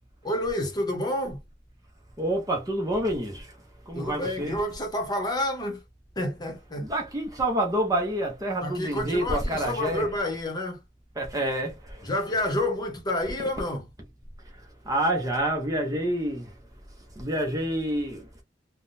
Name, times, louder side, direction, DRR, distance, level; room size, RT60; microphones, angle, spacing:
voice 1, 0.2-1.4 3.9-5.8 6.2-6.9 8.6-10.8 12.0-13.8, left 1 dB, 25° left, 0.9 m, -29 dB
voice 2, 2.2-3.6 3.9-4.6 6.8-10.2 11.2-12.6 13.4-13.5 14.5-16.6 17.1-18.3, right 1 dB, 20° right, 0.7 m, -28 dB
3.5 x 2.2 x 2.6 m
head